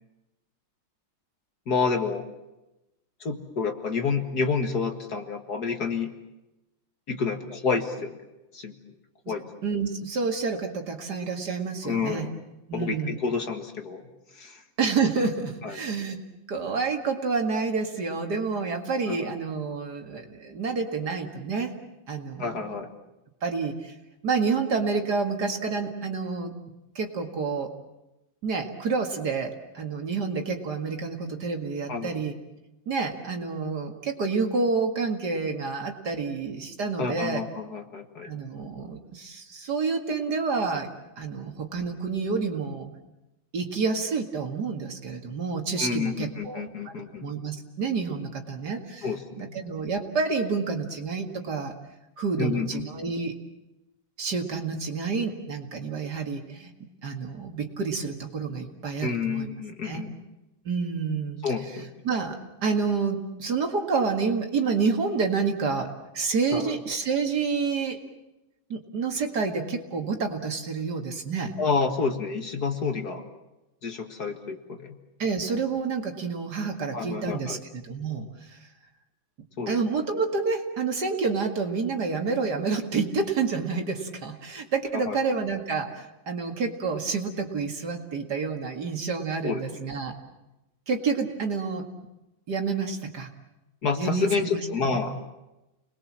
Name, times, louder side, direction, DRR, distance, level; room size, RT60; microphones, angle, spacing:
voice 1, 1.7-2.3 3.2-6.1 7.1-8.2 8.5-8.8 9.3-9.5 11.8-12.3 12.7-14.6 15.6-15.8 19.1-19.3 22.4-22.9 31.9-32.1 37.0-38.3 45.8-47.3 49.0-49.6 52.4-52.8 59.0-60.1 61.4-61.9 66.5-66.8 71.6-73.2 73.8-75.0 76.9-77.6 79.6-79.8 84.9-85.2 89.4-89.6 93.8-95.2, left 5 dB, 50° left, 5 dB, 2.2 m, -29 dB
voice 2, 9.6-12.3 12.7-13.1 14.8-16.2 16.5-21.7 22.1-22.8 23.4-23.9 24.2-26.5 27.0-27.7 28.4-32.3 32.9-37.4 38.2-40.9 41.2-42.9 43.5-46.9 47.2-49.1 49.4-51.8 52.2-53.3 54.2-56.7 57.0-59.5 59.8-60.0 60.6-61.4 62.0-68.0 68.7-71.5 75.2-78.6 79.7-90.1 90.9-91.8 92.5-93.3 94.0-94.6, right 4 dB, 55° right, 4 dB, 2.6 m, -29 dB
30.0 x 21.0 x 7.5 m, 0.97 s
omnidirectional pair, 2.2 m